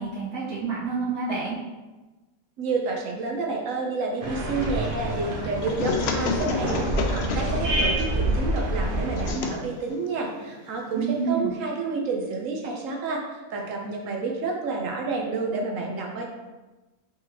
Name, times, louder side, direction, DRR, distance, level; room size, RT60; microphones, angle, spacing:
voice 1, 0.0-1.6 10.9-11.5, right 4 dB, 80° right, -9 dB, 2.3 m, -28 dB
voice 2, 2.6-13.2 13.5-16.2, right 3 dB, 65° right, 0 dB, 1.1 m, -29 dB
sound 1, 4.2-9.3, right 1 dB, 45° right, 0.7 m, -27 dB
sound 2, 4.6-11.3, left 5 dB, 75° left, 0.6 m, -33 dB
4.7 x 3.9 x 2.9 m, 1.2 s
omnidirectional pair, 1.6 m